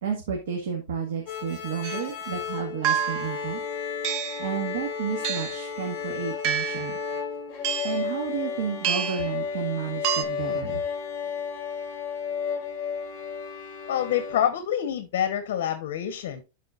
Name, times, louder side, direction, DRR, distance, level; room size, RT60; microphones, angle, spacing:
voice 1, 0.0-3.6 4.4-7.0 7.8-10.8, right 7 dB, 85° right, 1 dB, 1.8 m, -31 dB
sound 1, 1.3-14.4, left 7 dB, 25° left, 2.9 m, -33 dB
sound 2, 1.8-2.0 2.8-3.4 4.0-4.5 5.2-5.6 6.4-6.9 7.6-8.0 8.8-9.3 10.0-10.2, right 9 dB, 35° right, 0.6 m, -28 dB
voice 2, 13.9-16.4, left 10 dB, 65° left, 8 dB, 1.1 m, -26 dB
12.5 x 4.3 x 2.6 m, 0.27 s
supercardioid pair, 165°, 0 cm